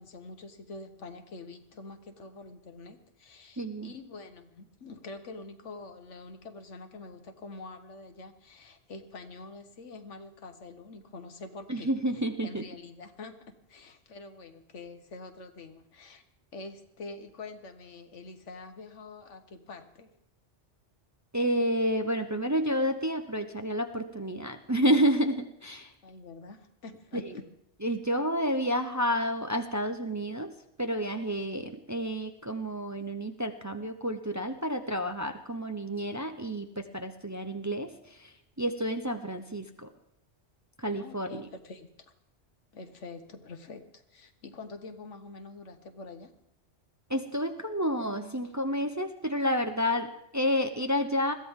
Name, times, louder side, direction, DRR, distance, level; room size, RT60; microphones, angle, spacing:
voice 1, 0.0-11.9 12.4-16.2 16.5-20.1 26.0-27.4 41.0-42.1 42.7-46.3, left 3 dB, 85° left, 8 dB, 1.5 m, -46 dB
voice 2, 3.6-3.9 11.7-12.6 21.3-25.9 27.3-27.4 27.8-30.5 30.8-39.9 40.8-41.4 47.1-51.3, equal, 20° right, 7 dB, 0.6 m, -30 dB
21.0 x 14.5 x 3.6 m, 0.77 s
omnidirectional pair, 1.2 m